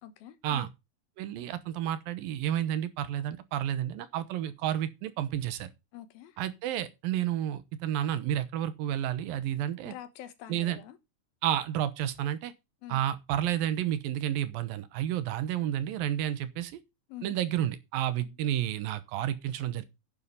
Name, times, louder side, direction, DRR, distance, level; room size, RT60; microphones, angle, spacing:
voice 1, 0.0-0.7 5.9-6.4 9.8-11.0 12.8-13.0 17.1-17.4 18.2-18.3, left 11 dB, 85° left, 3.1 m, -45 dB
voice 2, 1.2-5.7 6.4-9.9 10.5-10.8 11.4-12.5 12.9-16.8 17.2-19.9, right 11 dB, 80° right, 2.8 m, -31 dB
9.8 x 7.0 x 5.7 m
omnidirectional pair, 4.1 m